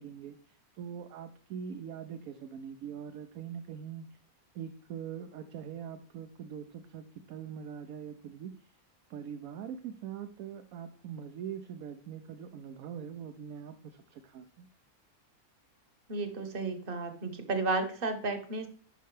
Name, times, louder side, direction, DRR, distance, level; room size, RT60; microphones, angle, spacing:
voice 1, 0.0-4.1 4.5-8.5 9.1-14.7, right 8 dB, 75° right, 7 dB, 1.1 m, -43 dB
voice 2, 16.1-18.7, right 3 dB, 40° right, 8 dB, 1.1 m, -33 dB
10.5 x 5.5 x 3.2 m, 0.43 s
omnidirectional pair, 1.6 m